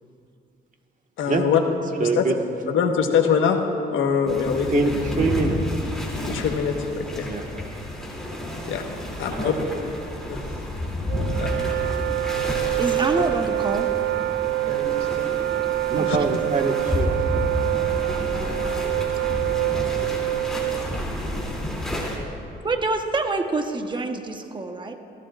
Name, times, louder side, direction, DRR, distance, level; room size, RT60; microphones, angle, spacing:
voice 1, 1.2-1.6 2.0-2.3 2.7-3.6 3.9-4.9 6.2-7.3 8.6-8.8 9.2-9.6 10.3-10.4 11.4-11.5 16.1-16.2, left 7 dB, 80° left, 4 dB, 1.3 m, -23 dB
voice 2, 2.0-2.3 4.7-5.6 7.2-7.4 10.5-10.6 15.9-17.2, right 4 dB, 40° right, 3 dB, 1.6 m, -24 dB
sound 1, 4.3-22.2, left 1 dB, 5° left, 2.7 m, -30 dB
voice 3, 9.3-10.6 12.9-13.0 14.6-15.4, right 3 dB, 90° right, 0 dB, 2.8 m, -37 dB
Wind instrument woodwind instrument, 11.1-21.0, right 16 dB, 65° right, 0.5 m, -26 dB
voice 4, 12.8-13.9 16.0-16.2 22.6-25.0, right 3 dB, 25° right, 5 dB, 1.1 m, -26 dB
24.0 x 15.5 x 2.5 m, 2.5 s
cardioid pair, 90°, 20 cm